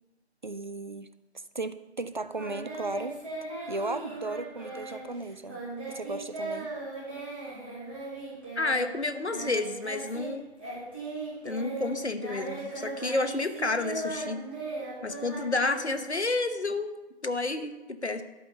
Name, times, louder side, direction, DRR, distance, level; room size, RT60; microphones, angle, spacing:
voice 1, 0.4-1.1 1.3-3.2 3.7-5.6 5.9-6.7, right 2 dB, 45° right, 12 dB, 0.6 m, -36 dB
Singing, 2.3-10.3 10.6-16.4, right 2 dB, 10° right, 1.6 m, -38 dB
voice 2, 8.6-10.4 11.4-14.4 15.0-16.9 17.2-18.2, left 3 dB, 80° left, 9 dB, 1.1 m, -30 dB
12.0 x 5.7 x 6.6 m, 1.1 s
figure-of-eight pair, 160°, 33 cm